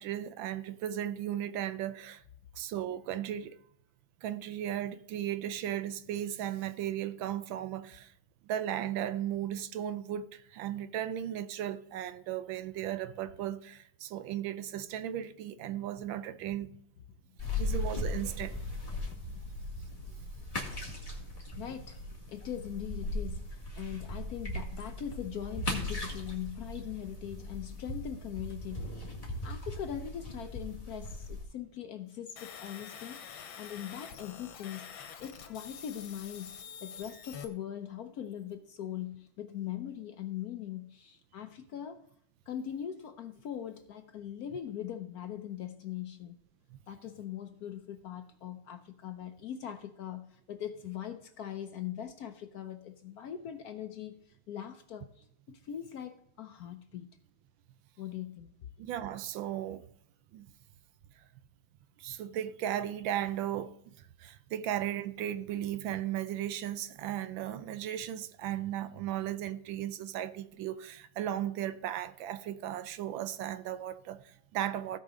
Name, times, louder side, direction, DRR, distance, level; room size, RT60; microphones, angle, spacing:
voice 1, 0.0-2.2 2.6-3.6 4.2-8.1 8.5-16.7 17.4-18.5 58.8-59.8 60.3-60.5 62.0-63.7 64.2-75.0, right 11 dB, 85° right, 1.4 m, -36 dB
sound 1, 17.4-31.4, left 1 dB, 20° left, 1.8 m, -38 dB
voice 2, 21.6-22.0 22.3-29.0 29.4-34.9 35.2-42.0 42.5-46.3 46.9-57.1 58.0-58.5, left 10 dB, 65° left, 0.9 m, -41 dB
sound 2, 32.4-37.5, left 7 dB, 90° left, 1.7 m, -47 dB
16.0 x 5.4 x 3.8 m
omnidirectional pair, 2.1 m